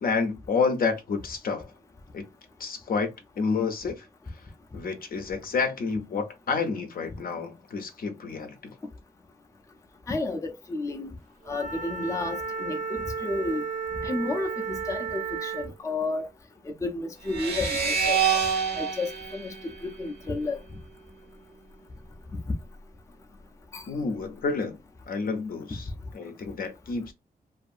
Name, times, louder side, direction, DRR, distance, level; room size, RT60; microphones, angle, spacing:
voice 1, 0.0-1.7 2.1-2.3 2.6-4.1 4.7-8.7 23.9-24.8 25.1-25.9 26.1-27.1, left 4 dB, 60° left, 0.7 m, -29 dB
voice 2, 10.1-11.1 11.5-13.6 14.0-16.3 16.7-18.2 18.7-20.6 23.7-23.8, left 2 dB, 20° left, 0.5 m, -31 dB
Wind instrument woodwind instrument, 11.5-15.8, right 5 dB, 55° right, 0.6 m, -33 dB
sound 1, 17.3-20.6, right 7 dB, 85° right, 1.1 m, -27 dB
2.6 x 2.5 x 2.4 m
wide cardioid pair, 110°, 17 cm